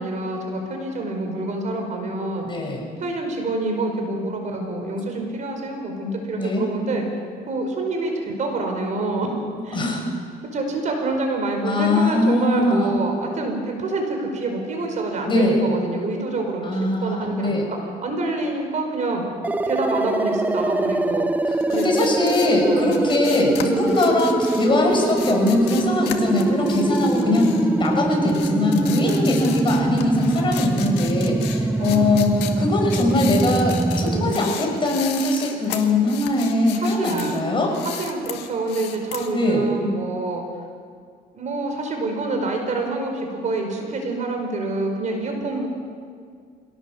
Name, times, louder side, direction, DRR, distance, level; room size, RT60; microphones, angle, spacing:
voice 1, 0.0-2.7 3.0-7.0 7.5-9.3 9.6-9.8 10.5-19.2 19.6-21.3 21.7-21.9 22.6-23.0 23.7-23.9 27.2-27.5 29.0-29.3 31.8-32.5 34.0-34.4 36.8-37.4 37.8-40.4 41.3-45.7, right 2 dB, 45° right, 3 dB, 5.1 m, -27 dB
voice 2, 2.4-2.8 6.4-6.7 9.7-10.0 11.6-13.0 15.3-15.6 16.6-17.6 21.7-37.7 39.3-39.7, left 2 dB, 30° left, 1 dB, 6.0 m, -21 dB
sound 1, 19.4-34.3, right 2 dB, 10° right, 0.7 m, -23 dB
sound 2, 21.6-28.0 28.3-37.4 37.7-39.3, left 11 dB, 90° left, 2.1 m, -35 dB
26.0 x 17.5 x 7.3 m, 2.1 s
cardioid pair, 110°, 17 cm